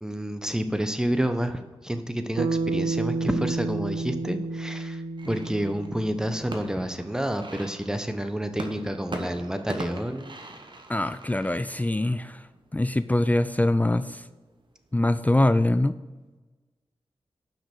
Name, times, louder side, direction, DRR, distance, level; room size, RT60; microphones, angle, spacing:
voice 1, 0.0-10.3, right 1 dB, 5° right, 8 dB, 0.9 m, -29 dB
Bass guitar, 2.4-6.8, right 3 dB, 85° right, 0.5 m, -30 dB
sound 1, 5.2-15.3, right 2 dB, 50° right, 1.1 m, -42 dB
voice 2, 10.9-12.4 12.7-14.2 14.9-16.0, left 1 dB, 15° left, 12 dB, 0.4 m, -23 dB
5.9 x 5.3 x 6.4 m, 1.2 s
cardioid pair, 45°, 10 cm